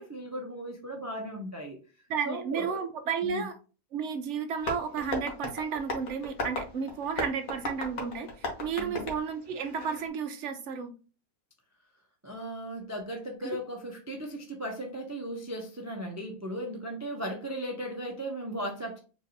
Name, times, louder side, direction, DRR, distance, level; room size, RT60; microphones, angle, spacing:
voice 1, 0.0-1.8 2.2-2.8 3.2-3.5 8.8-9.1 12.2-19.0, right 1 dB, 25° right, 0.3 m, -37 dB
voice 2, 2.1-3.5 3.9-10.9, right 6 dB, 60° right, 0.9 m, -32 dB
Tap, 4.6-10.1, left 2 dB, 65° left, 1.5 m, -37 dB
4.4 x 3.3 x 2.7 m
omnidirectional pair, 1.6 m